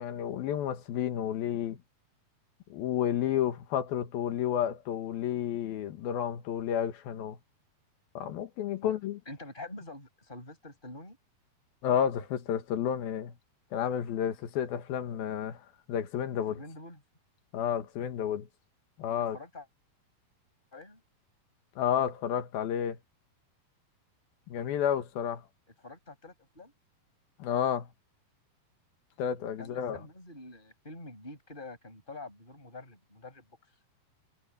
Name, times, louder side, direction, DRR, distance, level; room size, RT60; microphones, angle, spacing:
voice 1, 0.0-1.8 2.7-7.4 8.1-9.2 11.8-13.3 13.7-15.6 15.9-16.6 17.5-18.5 19.0-19.4 21.8-23.0 24.5-25.4 27.4-27.9 29.2-30.0, left 9 dB, 80° left, 3.4 m, -31 dB
voice 2, 9.3-11.2 16.5-17.0 19.3-19.7 20.7-21.0 25.8-26.7 29.6-33.5, left 2 dB, 10° left, 8.0 m, -46 dB
omnidirectional pair, 4.2 m